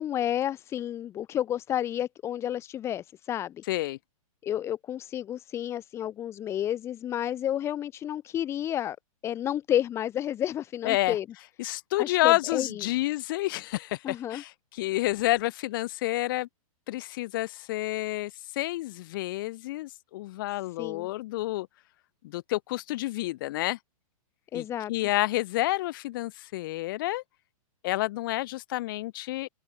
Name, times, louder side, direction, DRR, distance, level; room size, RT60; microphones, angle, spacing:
voice 1, 0.0-3.6 4.4-9.0 9.2-11.3 12.0-12.8 14.0-14.4 20.8-21.1 24.5-24.9, left 11 dB, 15° left, 5.6 m, -31 dB
voice 2, 3.7-4.0 10.8-11.2 11.6-16.5 16.9-21.7 22.2-23.8 24.5-27.2 27.8-29.5, left 17 dB, 35° left, 6.9 m, -29 dB
open air
hypercardioid pair, 175°, 18 cm